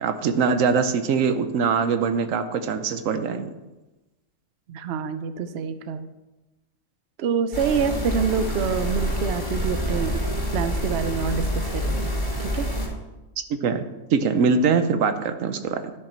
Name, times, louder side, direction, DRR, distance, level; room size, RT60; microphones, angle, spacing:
voice 1, 0.0-3.5 13.5-13.8 14.1-15.9, right 5 dB, 90° right, 9 dB, 1.1 m, -22 dB
voice 2, 4.7-6.1 7.2-10.1 10.5-12.1 12.5-12.7, right 6 dB, 60° right, 10 dB, 0.8 m, -26 dB
sound 1, 7.5-12.9, equal, 35° left, 2.7 m, -27 dB
13.0 x 5.9 x 4.4 m, 1.1 s
omnidirectional pair, 1.3 m